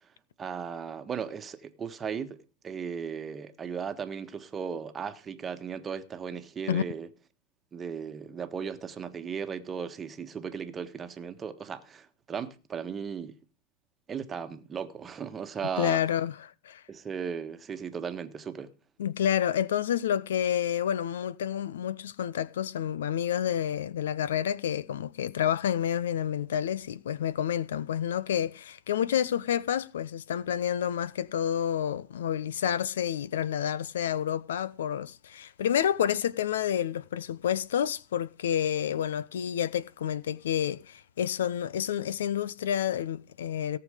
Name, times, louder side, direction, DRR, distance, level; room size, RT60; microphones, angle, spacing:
voice 1, 0.4-7.1 7.7-13.3 14.1-16.0 16.9-18.7, right 6 dB, 20° right, 1.4 m, -36 dB
voice 2, 15.8-16.8 19.0-43.8, left 9 dB, 80° left, 0.9 m, -29 dB
17.5 x 7.1 x 5.0 m
hypercardioid pair, 135°, 0 cm